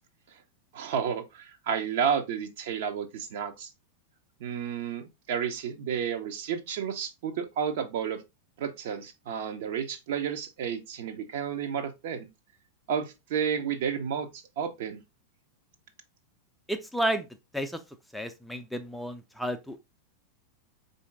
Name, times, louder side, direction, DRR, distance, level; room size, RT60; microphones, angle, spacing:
voice 1, 0.7-3.7 4.4-8.2 8.6-12.3 12.9-15.0, right 7 dB, 55° right, 0.6 m, -31 dB
voice 2, 16.7-17.3 17.5-17.8 18.1-19.8, right 1 dB, ahead, 0.4 m, -31 dB
4.3 x 2.7 x 3.4 m
figure-of-eight pair, 90°, 0 cm